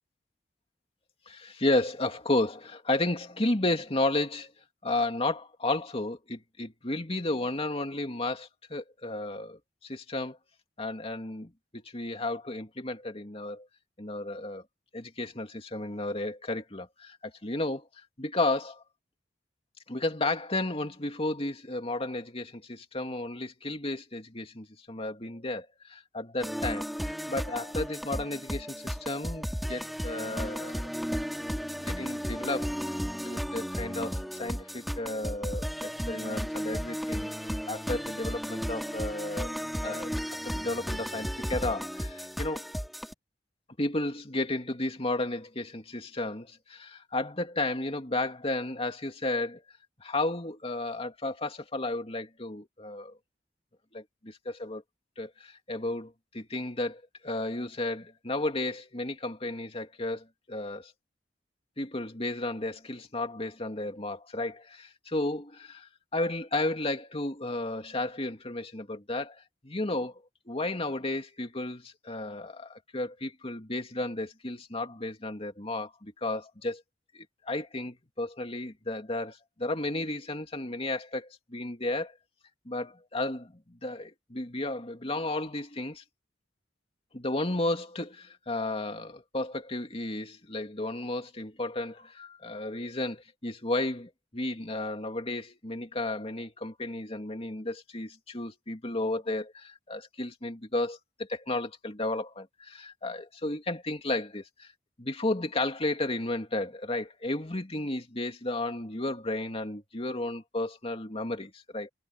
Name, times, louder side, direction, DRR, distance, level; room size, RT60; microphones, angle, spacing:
voice 1, 1.3-4.5 4.8-10.4 10.8-13.7 14.0-14.7 14.9-18.8 19.9-30.9 31.9-32.8 33.2-37.3 37.7-39.5 39.8-42.6 43.8-49.6 50.0-53.2 53.9-54.8 55.2-60.9 61.8-76.8 77.1-82.1 82.6-86.0 87.1-104.7 105.0-111.9, left 2 dB, 35° left, 2.6 m, -33 dB
sound 1, 26.4-43.1, equal, ahead, 3.0 m, -34 dB
head